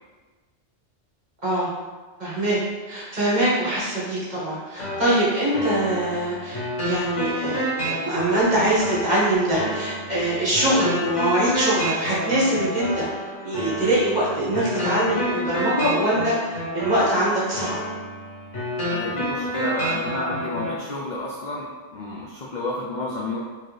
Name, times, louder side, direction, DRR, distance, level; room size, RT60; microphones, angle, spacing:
voice 1, 2.2-2.6 2.9-17.8, right 1 dB, 40° right, -8 dB, 1.3 m, -23 dB
sound 1, 4.8-20.8, equal, 90° left, 1.5 m, -29 dB
voice 2, 18.9-23.4, left 2 dB, 55° left, -4 dB, 0.5 m, -31 dB
4.6 x 2.9 x 3.1 m, 1.3 s
omnidirectional pair, 1.2 m